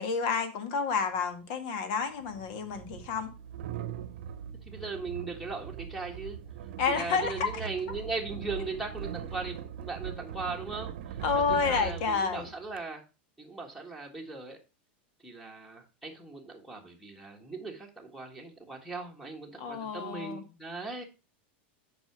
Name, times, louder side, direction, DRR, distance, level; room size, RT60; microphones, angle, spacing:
voice 1, 0.0-3.3 6.8-7.5 11.2-12.5 19.6-20.4, left 5 dB, 50° left, 1.8 m, -29 dB
sound 1, 1.1-1.2 2.2-12.8, right 9 dB, 75° right, 0.9 m, -41 dB
voice 2, 4.6-6.4 6.9-13.0 13.4-14.6 15.2-21.0, right 3 dB, ahead, 1.6 m, -39 dB
8.0 x 5.7 x 4.6 m
supercardioid pair, 155°, 6 cm